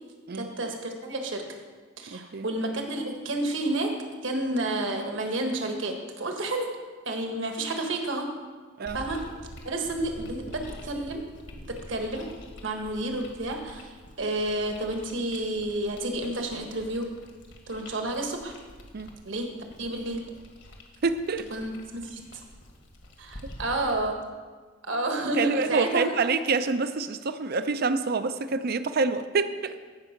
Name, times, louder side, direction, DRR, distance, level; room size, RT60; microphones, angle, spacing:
voice 1, 0.3-1.6 2.0-3.9 4.2-6.7 7.0-8.3 8.9-9.3 9.6-11.3 11.7-12.3 12.6-13.9 14.2-17.1 17.7-18.5 19.2-20.2 21.5-22.2 23.2-24.3 24.8-26.1, right 2 dB, 65° right, 3 dB, 1.4 m, -30 dB
voice 2, 2.1-2.5 8.8-9.0 18.9-19.1 21.0-21.5 25.4-29.7, right 4 dB, 50° right, 11 dB, 0.5 m, -27 dB
sound 1, 8.9-24.1, left 1 dB, 60° left, 1.7 m, -47 dB
15.5 x 5.4 x 5.9 m, 1.5 s
head